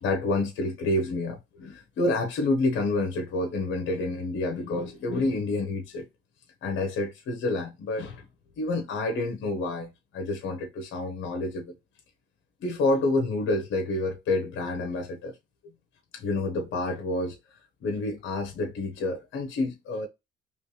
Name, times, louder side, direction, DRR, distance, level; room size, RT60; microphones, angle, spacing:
voice 1, 0.0-6.1 6.6-8.2 8.6-11.7 12.6-15.3 16.1-17.4 17.8-20.1, left 2 dB, 75° left, 1.0 m, -28 dB
3.3 x 3.1 x 3.2 m
cardioid pair, 90°, 20 cm